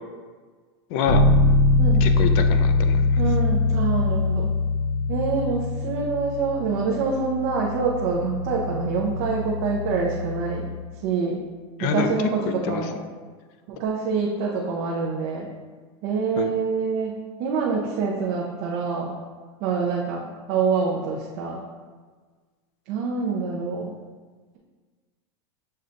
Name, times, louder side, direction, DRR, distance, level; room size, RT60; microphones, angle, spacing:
voice 1, 0.9-1.3 2.0-3.1 11.8-12.1 12.5-12.8 16.4-16.5, left 6 dB, 35° left, 8 dB, 0.3 m, -26 dB
Bass guitar, 1.1-10.8, left 3 dB, 55° left, 0.9 m, -23 dB
voice 2, 3.2-4.5 5.1-10.7 11.0-11.5 11.8-13.0 13.7-15.5 16.0-19.1 19.6-21.6 22.9-23.9, right 5 dB, 40° right, -2 dB, 0.5 m, -26 dB
6.5 x 2.2 x 3.7 m, 1.5 s
supercardioid pair, 170°, 14 cm